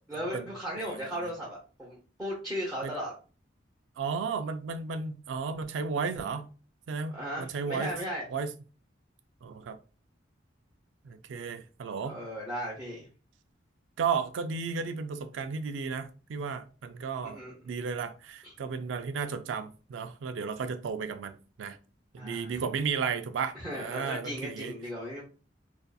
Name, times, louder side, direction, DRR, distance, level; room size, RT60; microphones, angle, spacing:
voice 1, 0.1-3.1 7.1-8.2 12.1-13.1 17.2-17.5 18.4-18.5 22.2-22.6 23.5-25.2, equal, ahead, 0.7 m, -36 dB
voice 2, 4.0-6.5 6.9-7.9 8.3-8.5 9.4-9.8 11.0-12.2 14.0-17.4 17.6-21.8 22.2-24.7, right 5 dB, 75° right, 0.3 m, -33 dB
2.5 x 2.4 x 2.2 m
head